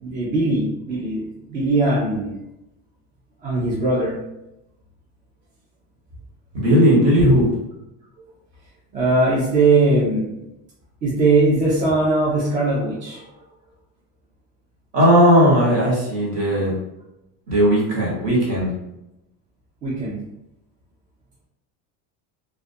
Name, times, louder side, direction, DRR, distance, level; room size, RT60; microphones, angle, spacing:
voice 1, 0.0-2.4 3.4-4.2 8.9-10.3 11.0-13.3 19.8-20.2, right 2 dB, 25° right, -6 dB, 0.4 m, -20 dB
voice 2, 6.5-7.5 14.9-16.7 17.5-18.7, equal, 40° right, -5 dB, 1.2 m, -16 dB
2.3 x 2.2 x 2.6 m, 0.88 s
cardioid pair, 150°, 38 cm